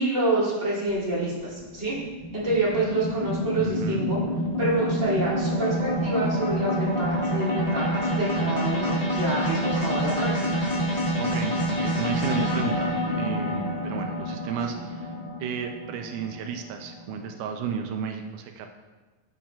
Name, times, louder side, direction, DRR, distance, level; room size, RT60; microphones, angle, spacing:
voice 1, 0.0-2.0 2.3-4.2 4.6-10.3, right 2 dB, 25° right, -7 dB, 2.7 m, -27 dB
sound 1, 0.9-17.3, equal, 25° left, 1.2 m, -27 dB
voice 2, 3.6-4.1 8.3-8.5 11.2-15.1 15.4-18.7, right 6 dB, 85° right, 5 dB, 2.1 m, -33 dB
12.5 x 7.3 x 2.4 m, 1.3 s
omnidirectional pair, 3.5 m